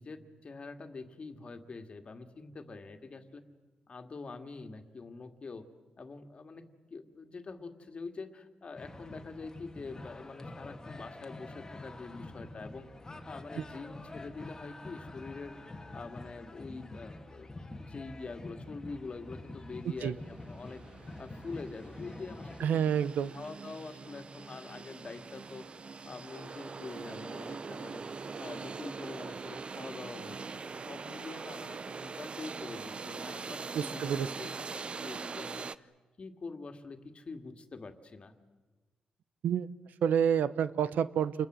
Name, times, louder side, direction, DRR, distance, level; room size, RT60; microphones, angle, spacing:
voice 1, 0.0-3.4 3.9-5.6 6.0-12.9 13.2-15.6 15.9-17.5 17.8-20.8 21.2-23.1 23.3-25.7 26.0-28.0 28.4-35.9 36.2-38.3, left 4 dB, 40° left, 7 dB, 2.1 m, -45 dB
sound 1, 8.8-22.7, left 2 dB, 20° left, 1.7 m, -46 dB
sound 2, 19.8-19.9 20.1-35.7, right 4 dB, 40° right, 0.7 m, -42 dB
voice 2, 22.6-23.3 33.7-34.3 39.4-39.7 40.0-41.5, right 8 dB, 85° right, 15 dB, 0.8 m, -28 dB
28.0 x 21.5 x 7.6 m, 1.3 s
cardioid pair, 95°, 3 cm